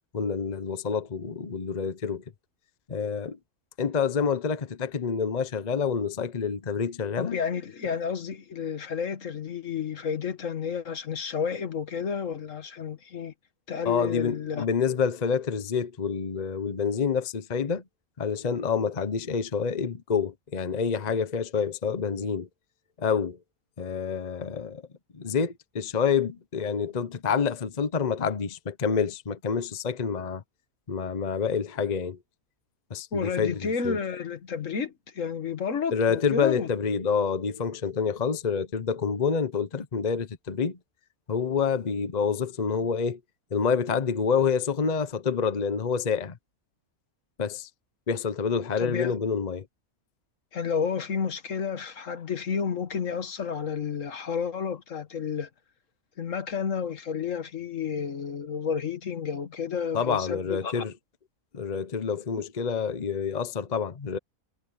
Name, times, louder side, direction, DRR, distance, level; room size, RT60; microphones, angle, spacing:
voice 1, 0.1-2.2 2.9-3.4 3.8-7.4 13.8-17.8 18.2-22.5 23.0-23.4 23.8-24.8 25.1-30.4 30.9-32.2 32.9-34.0 35.9-40.8 41.3-43.2 43.5-46.4 47.4-47.7 48.1-49.6 59.9-60.9 61.5-64.2, left 6 dB, 35° left, 0.9 m, -27 dB
voice 2, 7.2-13.3 13.7-14.7 33.1-36.7 48.8-49.1 50.5-55.5 56.2-60.9, left 6 dB, 60° left, 1.6 m, -31 dB
omnidirectional pair, 1.5 m